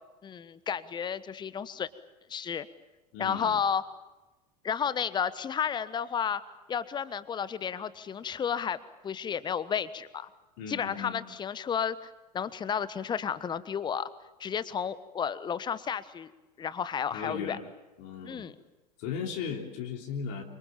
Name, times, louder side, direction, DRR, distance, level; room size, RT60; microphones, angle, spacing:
voice 1, 0.2-1.9 2.3-2.7 3.2-3.8 4.6-6.4 6.7-8.8 9.0-10.3 10.7-14.1 14.4-16.3 16.6-17.6 18.2-18.5, left 7 dB, 20° left, 16 dB, 1.2 m, -32 dB
voice 2, 3.1-3.6 10.6-11.2 17.1-17.6 18.0-18.5 19.0-20.4, left 6 dB, 50° left, 1 dB, 3.5 m, -36 dB
28.0 x 25.5 x 7.3 m, 1.1 s
figure-of-eight pair, 80°, 21 cm